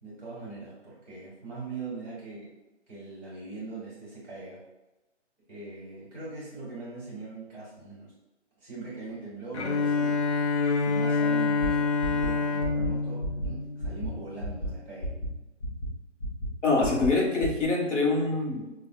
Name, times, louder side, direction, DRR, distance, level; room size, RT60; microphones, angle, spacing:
voice 1, 0.0-2.6 2.9-4.6 5.5-8.1 8.6-10.2 10.8-15.2, right 3 dB, 5° right, -8 dB, 1.0 m, -41 dB
Bowed string instrument, 9.5-14.5, left 4 dB, 65° left, 0.6 m, -27 dB
sound 1, 11.6-11.7 12.0-12.3 12.6-12.9 13.2-13.5 13.8-14.1 14.4-14.7 15.0-15.3 15.6-15.9 16.2-16.5 16.8-17.1 17.4-17.6, right 1 dB, 45° left, 0.9 m, -32 dB
voice 2, 16.6-18.7, left 3 dB, 90° left, -1 dB, 1.2 m, -25 dB
4.9 x 2.4 x 2.2 m, 1.0 s
hypercardioid pair, 165°, 36 cm